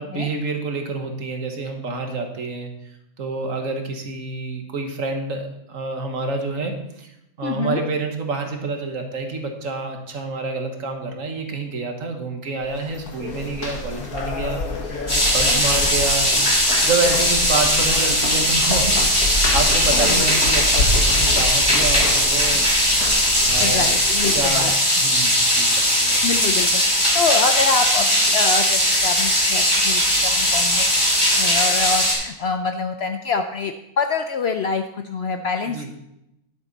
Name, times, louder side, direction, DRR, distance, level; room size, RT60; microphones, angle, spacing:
voice 1, 0.0-7.1 7.4-16.3 16.8-22.7 23.5-23.9 24.3-26.3 35.7-35.9, right 3 dB, 65° right, 4 dB, 1.6 m, -28 dB
voice 2, 7.4-7.8 15.4-15.8 20.0-20.2 23.6-24.7 26.2-30.9 31.2-35.9, left 5 dB, 60° left, 7 dB, 0.7 m, -26 dB
sound 1, 12.6-24.7, left 2 dB, 90° left, 2.0 m, -28 dB
sound 2, 15.1-32.1, equal, 20° left, 2.8 m, -19 dB
10.0 x 8.2 x 4.1 m, 0.85 s
omnidirectional pair, 1.5 m